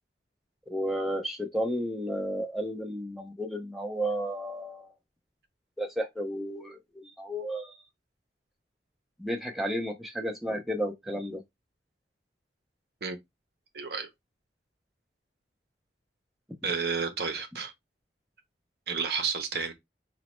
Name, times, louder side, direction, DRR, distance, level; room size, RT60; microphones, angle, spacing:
voice 1, 0.7-4.9 5.8-7.8 9.2-11.4, equal, ahead, 0.5 m, -32 dB
voice 2, 13.7-14.1 16.6-17.7 18.9-19.7, right 5 dB, 60° right, 0.6 m, -31 dB
3.9 x 2.1 x 3.0 m
head